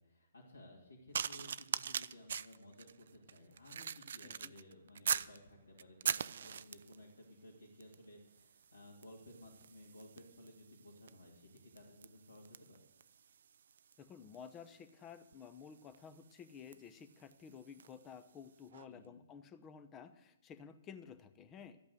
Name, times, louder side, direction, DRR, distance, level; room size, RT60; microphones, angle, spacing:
voice 1, 0.0-12.8 18.9-19.2, left 1 dB, 80° left, -5 dB, 2.8 m, -57 dB
sound 1, 1.1-5.4 5.8-7.0 7.8-8.0 8.3-18.0 18.7-18.9, right 7 dB, 55° right, 0.4 m, -43 dB
voice 2, 14.0-21.8, left 7 dB, 20° left, 11 dB, 0.9 m, -53 dB
13.5 x 8.5 x 8.0 m, 0.97 s
figure-of-eight pair, 125°, 0 cm